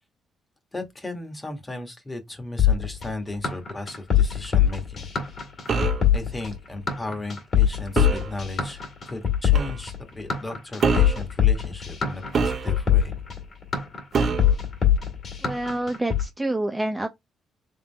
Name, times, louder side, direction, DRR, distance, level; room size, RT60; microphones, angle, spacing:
voice 1, 0.7-5.1 6.1-13.1, left 2 dB, 15° left, 1.5 m, -36 dB
sound 1, 2.6-16.2, left 9 dB, 50° left, 1.9 m, -22 dB
sound 2, 5.7-6.1 8.0-8.3 9.5-9.8 10.8-11.2 12.3-13.0 14.1-14.6, right 4 dB, 50° right, 0.9 m, -25 dB
voice 2, 15.4-17.1, right 1 dB, 15° right, 0.6 m, -27 dB
3.7 x 3.4 x 3.4 m
cardioid pair, 90°, 0 cm